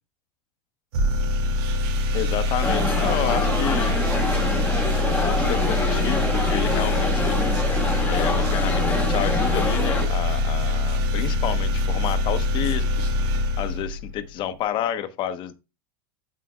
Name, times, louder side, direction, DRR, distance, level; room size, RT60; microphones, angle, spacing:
sound 1, 0.9-14.3, left 2 dB, 65° right, 2.1 m, -24 dB
voice 1, 2.1-4.0 5.0-7.4 8.0-13.2 13.6-15.5, left 10 dB, 40° left, 0.9 m, -30 dB
sound 2, 2.6-10.1, left 2 dB, 10° left, 1.3 m, -26 dB
7.8 x 7.5 x 2.2 m
supercardioid pair, 135°, 13 cm